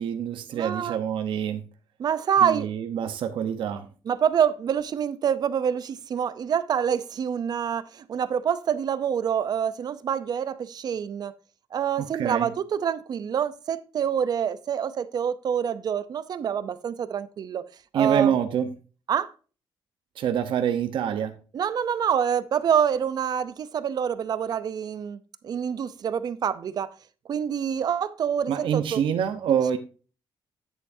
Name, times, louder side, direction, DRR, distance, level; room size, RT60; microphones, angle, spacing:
voice 1, 0.0-1.6 2.4-3.9 12.0-12.5 17.9-18.7 20.2-21.3 28.5-29.8, right 8 dB, 75° right, 1.0 m, -26 dB
voice 2, 0.5-1.0 2.0-2.7 4.1-11.3 11.7-17.6 17.9-18.3 19.1-19.3 21.5-26.9 27.3-29.0 29.5-29.6, right 8 dB, 50° right, 0.6 m, -26 dB
9.6 x 8.3 x 2.7 m
cardioid pair, 130°, 9 cm